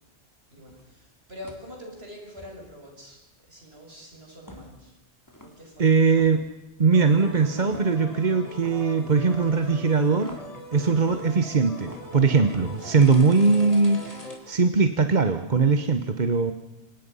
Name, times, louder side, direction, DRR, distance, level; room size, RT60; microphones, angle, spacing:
voice 1, 0.5-3.2 3.5-5.0 5.4-6.0, left 1 dB, 60° right, 1 dB, 6.5 m, -44 dB
sound 1, 0.7-0.9 1.4-1.8 2.4-2.6 4.5-4.8 5.3-5.6 6.1-6.4 6.9-7.2 7.7-8.0 8.5-8.9 9.4-10.6 11.1-11.5 11.8-12.1, left 1 dB, 15° left, 3.2 m, -48 dB
voice 2, 5.8-6.4 6.8-10.4 10.7-16.5, right 4 dB, 40° right, 8 dB, 1.2 m, -21 dB
sound 2, 6.9-14.4, left 1 dB, 30° left, 4.1 m, -40 dB
27.0 x 18.5 x 5.6 m, 0.95 s
omnidirectional pair, 1.2 m